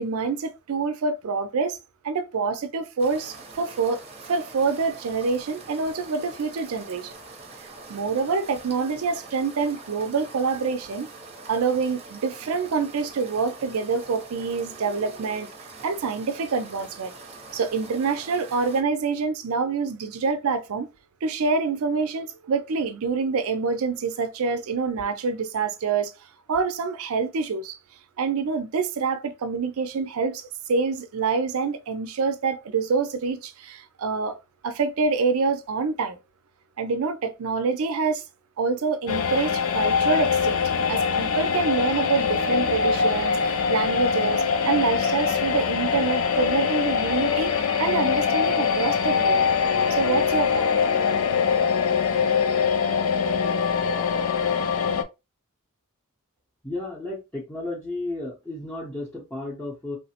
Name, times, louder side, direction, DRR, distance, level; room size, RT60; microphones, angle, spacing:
voice 1, 0.0-1.8 2.0-7.2 7.9-11.1 11.5-15.5 15.8-17.1 17.5-20.9 21.2-26.1 26.5-27.8 28.2-34.4 34.6-36.2 36.8-38.2 38.6-40.6 40.9-49.4 49.9-50.7, right 4 dB, 70° right, 0.4 m, -26 dB
sound 1, 3.0-18.8, right 3 dB, 30° right, 0.7 m, -44 dB
sound 2, 39.1-55.0, left 6 dB, 65° left, 0.4 m, -23 dB
voice 2, 56.6-60.0, left 2 dB, 5° left, 0.7 m, -33 dB
3.1 x 2.0 x 2.8 m
head